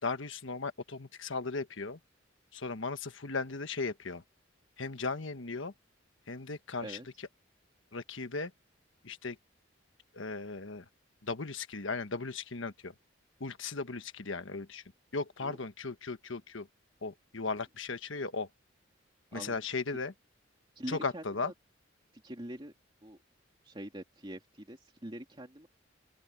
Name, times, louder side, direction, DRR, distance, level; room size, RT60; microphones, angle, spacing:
voice 1, 0.0-2.0 2.5-4.2 4.8-5.7 6.3-7.0 7.9-8.5 9.0-9.4 10.1-10.8 11.2-12.9 13.4-14.8 15.1-16.7 17.0-18.5 19.3-20.1 20.9-21.5, left 4 dB, 75° left, 1.4 m, -37 dB
voice 2, 19.3-20.0 20.7-21.5 22.1-22.7 23.0-23.2 23.6-25.7, right 1 dB, 25° right, 2.8 m, -44 dB
open air
head